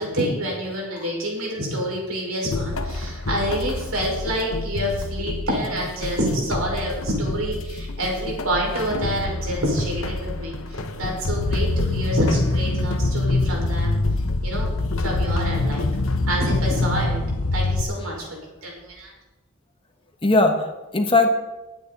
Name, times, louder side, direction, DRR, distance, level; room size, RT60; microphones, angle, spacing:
voice 1, 0.0-14.0 14.4-14.7 15.0-15.8 16.3-17.2 17.5-19.1, equal, 70° right, -1 dB, 5.4 m, -27 dB
sound 1, 2.5-17.0, left 2 dB, 60° left, 1.1 m, -31 dB
sound 2, 11.2-17.8, left 2 dB, 85° left, 1.0 m, -24 dB
voice 2, 20.2-21.3, left 2 dB, 25° left, 4 dB, 1.2 m, -20 dB
22.0 x 9.2 x 4.2 m, 1.1 s
head